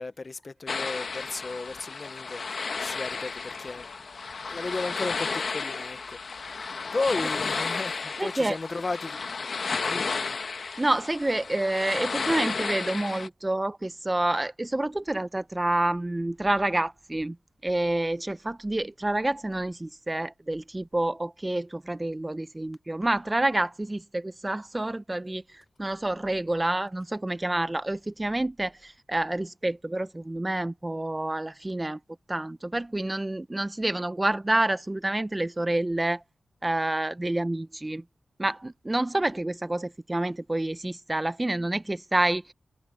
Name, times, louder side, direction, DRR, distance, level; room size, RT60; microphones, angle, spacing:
voice 1, 0.0-4.2 4.5-9.2 9.9-10.4, left 3 dB, 40° left, 0.7 m, -34 dB
sound 1, 0.7-13.3, left 4 dB, 65° left, 1.1 m, -33 dB
voice 2, 8.2-8.6 10.8-17.4 17.6-32.0 32.3-36.2 36.6-38.0 38.4-42.5, right 1 dB, 20° right, 0.6 m, -28 dB
wide cardioid pair, 90°, 0 cm